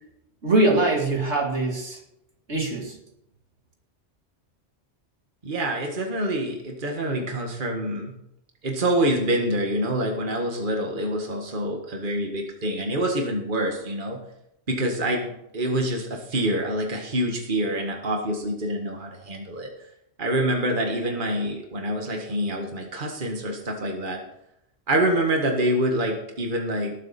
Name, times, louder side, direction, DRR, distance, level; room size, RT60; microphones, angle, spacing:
voice 1, 0.4-2.0 2.5-3.0, right 2 dB, 70° right, 2.5 m, -22 dB
voice 2, 5.4-8.1 8.6-14.2 14.7-19.7 20.2-24.2 24.9-27.0, right 1 dB, 45° right, 1.9 m, -26 dB
19.0 x 8.7 x 4.4 m
omnidirectional pair, 1.2 m